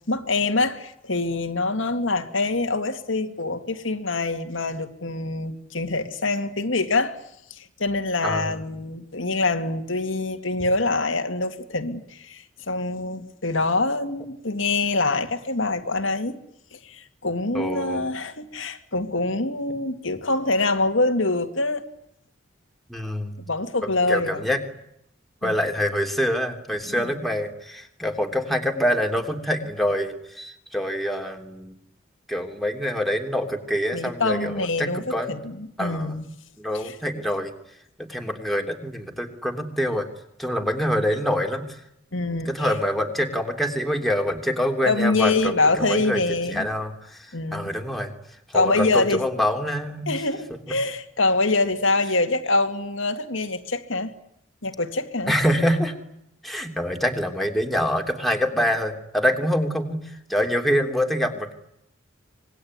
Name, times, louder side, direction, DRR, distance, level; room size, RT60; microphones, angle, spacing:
voice 1, 0.1-7.2 7.5-16.4 16.7-21.8 23.5-24.4 25.4-25.6 26.9-27.1 33.9-36.3 36.7-36.9 42.1-42.7 44.9-46.7 47.3-47.7 48.5-49.2 50.1-54.1 54.6-55.3, left 3 dB, 80° left, 2.3 m, -25 dB
voice 2, 8.2-8.6 17.5-18.0 22.9-23.4 24.1-24.6 25.4-31.7 32.3-35.4 35.8-36.1 36.6-37.5 38.0-40.1 40.4-41.8 42.3-46.2 46.5-48.1 48.5-50.1 55.3-55.9 56.4-61.5, equal, ahead, 3.2 m, -25 dB
26.0 x 21.0 x 9.7 m
head